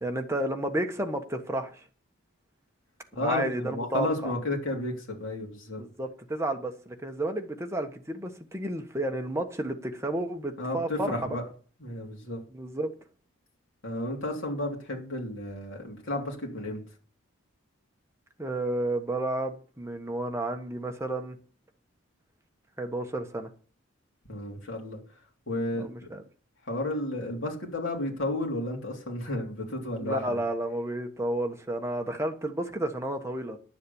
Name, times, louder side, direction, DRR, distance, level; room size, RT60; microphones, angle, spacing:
voice 1, 0.0-1.8 3.2-4.3 5.8-11.1 12.5-12.9 18.4-21.4 22.8-23.5 25.8-26.2 30.0-33.6, right 1 dB, 15° right, 1.3 m, -31 dB
voice 2, 3.1-5.8 10.6-11.4 11.8-12.4 13.8-16.8 24.3-25.0 25.5-26.1 26.6-30.4, left 1 dB, 65° left, 3.4 m, -32 dB
11.5 x 7.6 x 7.1 m
head